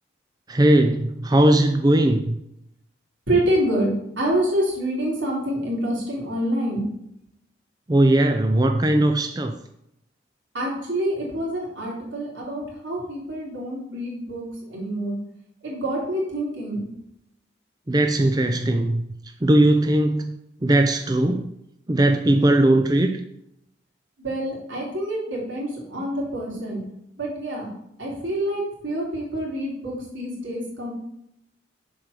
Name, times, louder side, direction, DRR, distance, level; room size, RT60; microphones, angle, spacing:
voice 1, 0.5-2.4 7.9-9.6 17.9-19.0 19.4-21.5 21.9-23.1, right 1 dB, 20° right, 5 dB, 0.5 m, -19 dB
voice 2, 3.3-6.8 10.5-15.2 15.6-16.8 24.2-26.8 27.2-27.7 28.0-30.9, right 1 dB, 85° right, -4 dB, 3.5 m, -27 dB
7.1 x 4.8 x 6.6 m, 0.78 s
head